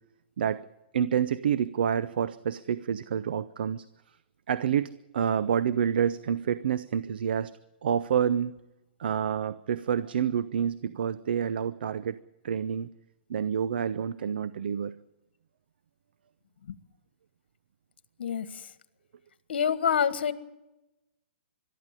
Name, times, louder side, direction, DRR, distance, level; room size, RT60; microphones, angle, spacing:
voice 1, 0.9-3.8 4.5-7.5 7.8-8.5 9.0-12.2 12.4-12.9 13.3-14.9, right 8 dB, 65° right, 15 dB, 0.8 m, -28 dB
voice 2, 19.5-20.3, left 7 dB, 70° left, 13 dB, 1.7 m, -26 dB
22.5 x 13.0 x 9.8 m, 0.97 s
hypercardioid pair, 160°, 6 cm